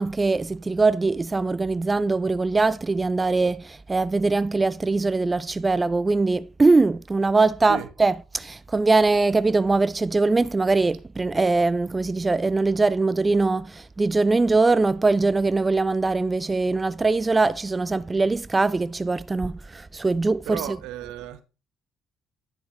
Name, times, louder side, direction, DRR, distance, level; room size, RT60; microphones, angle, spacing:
voice 1, 0.0-20.8, right 3 dB, 20° right, 0.3 m, -22 dB
voice 2, 20.5-21.4, right 11 dB, 85° right, 1.0 m, -34 dB
10.0 x 6.6 x 3.1 m
supercardioid pair, 85°, 0 cm